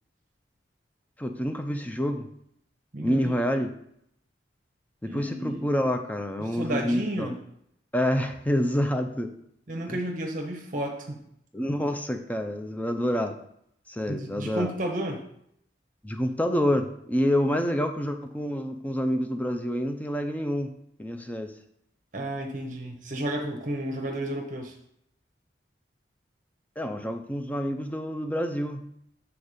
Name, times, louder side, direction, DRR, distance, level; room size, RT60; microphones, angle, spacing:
voice 1, 1.2-2.3 3.0-3.7 5.0-7.3 7.9-9.3 9.9-10.0 11.5-13.4 13.9-14.7 16.0-20.7 21.0-21.5 26.8-28.9, equal, 10° left, 5 dB, 0.5 m, -27 dB
voice 2, 2.9-3.4 5.1-5.6 6.4-7.4 9.7-11.2 14.1-15.2 22.1-24.7, right 1 dB, 45° right, 2 dB, 0.8 m, -32 dB
7.0 x 4.1 x 4.9 m, 0.73 s
head